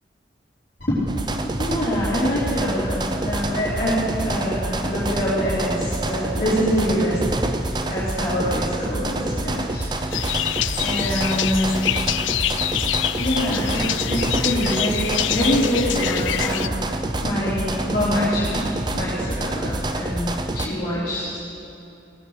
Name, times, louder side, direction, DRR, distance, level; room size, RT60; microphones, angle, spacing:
sound 1, 1.1-20.7, right 2 dB, 25° right, 0.6 m, -27 dB
voice 1, 1.6-7.4 7.9-9.9 10.2-10.3 10.8-11.7 13.2-16.8 17.2-21.3, equal, 50° left, -13 dB, 3.7 m, -25 dB
sound 2, 10.1-16.7, left 13 dB, 90° left, 0.4 m, -26 dB
18.0 x 8.4 x 6.5 m, 2.9 s
head